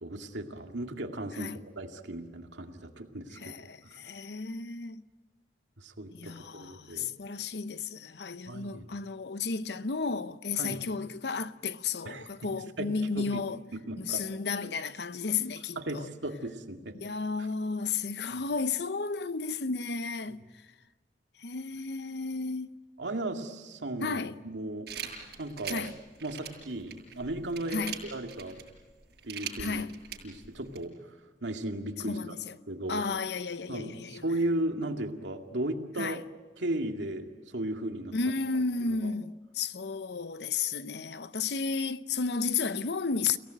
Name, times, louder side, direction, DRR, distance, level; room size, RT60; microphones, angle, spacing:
voice 1, 0.0-3.5 5.8-7.1 8.5-8.9 10.6-10.8 12.1-12.5 12.8-13.5 13.7-14.2 14.6-14.7 15.8-17.0 18.3-18.4 23.0-24.9 25.4-25.8 26.2-28.6 29.2-29.8 30.2-32.3 32.7-33.0 33.7-36.3 36.6-38.1 39.0-39.1, right 1 dB, 90° right, 2.3 m, -36 dB
voice 2, 3.4-5.1 6.1-13.6 14.0-16.1 16.9-20.4 21.4-22.8 24.0-24.4 25.7-26.0 27.7-28.0 29.6-29.9 32.0-32.5 32.9-34.2 36.0-36.2 38.1-43.4, left 4 dB, 65° left, 0.8 m, -33 dB
sound 1, 24.9-30.8, right 7 dB, 60° right, 7.0 m, -42 dB
30.0 x 17.5 x 9.1 m
head